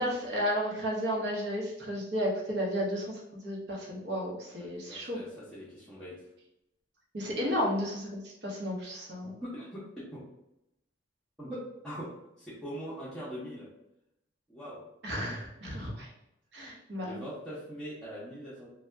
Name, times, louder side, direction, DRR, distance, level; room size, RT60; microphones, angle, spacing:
voice 1, 0.0-5.2 7.1-9.3 15.0-16.1 16.5-17.2, equal, 55° right, -3 dB, 0.9 m, -33 dB
voice 2, 4.5-6.3 7.4-7.6 9.2-9.8 10.1-10.2 11.4-11.6 11.8-12.1 12.4-13.7 14.5-14.8 16.7-18.7, equal, 5° left, -12 dB, 0.7 m, -42 dB
2.7 x 2.2 x 3.3 m, 0.86 s
head